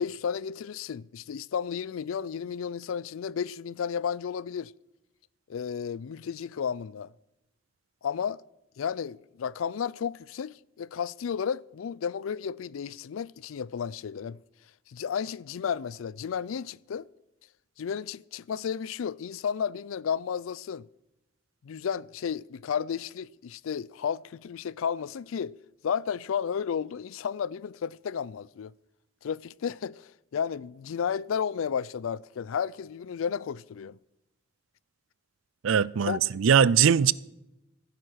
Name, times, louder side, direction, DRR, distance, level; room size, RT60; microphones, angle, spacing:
voice 1, 0.0-4.7 5.5-7.1 8.0-8.4 8.8-14.4 14.9-17.1 17.8-20.9 21.6-25.6 25.8-28.7 29.2-34.0 36.1-36.2, left 7 dB, 90° left, 0.4 m, -32 dB
voice 2, 35.6-37.1, right 7 dB, 85° right, 0.4 m, -21 dB
16.0 x 10.0 x 6.3 m
head